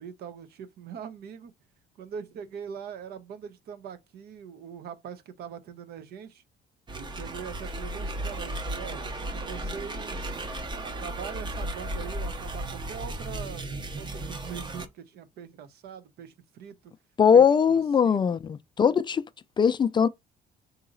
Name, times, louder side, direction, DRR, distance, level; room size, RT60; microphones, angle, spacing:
voice 1, 0.0-1.5 2.0-6.4 6.9-10.3 10.8-13.7 13.9-16.9 17.3-18.4, right 7 dB, 70° right, 0.8 m, -42 dB
sound 1, 6.9-14.9, right 1 dB, 25° right, 0.7 m, -35 dB
voice 2, 17.2-19.2 19.6-20.1, left 7 dB, 25° left, 0.4 m, -20 dB
3.9 x 2.8 x 3.9 m
cardioid pair, 110°, 17 cm